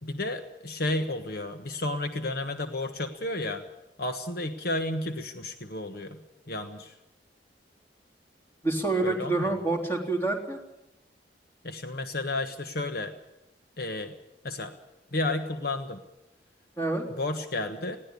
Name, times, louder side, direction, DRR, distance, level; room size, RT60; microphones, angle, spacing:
voice 1, 0.0-3.6 4.0-6.2 6.5-7.0 9.0-9.6 11.6-13.1 13.8-14.1 14.4-14.7 15.1-16.0 17.2-18.0, left 2 dB, 60° left, 7 dB, 1.3 m, -32 dB
voice 2, 8.6-10.6 16.8-17.0, right 2 dB, 15° left, 2 dB, 3.6 m, -27 dB
20.0 x 16.5 x 8.4 m, 0.91 s
head